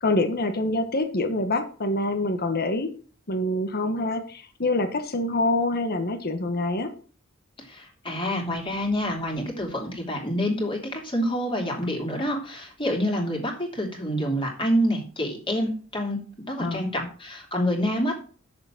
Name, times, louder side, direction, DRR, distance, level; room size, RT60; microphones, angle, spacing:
voice 1, 0.0-2.9 3.3-6.9 16.6-17.1, left 2 dB, 50° left, 7 dB, 1.3 m, -26 dB
voice 2, 7.7-16.2 16.5-18.2, equal, 25° left, 1 dB, 2.8 m, -27 dB
6.8 x 6.8 x 7.3 m, 0.41 s
head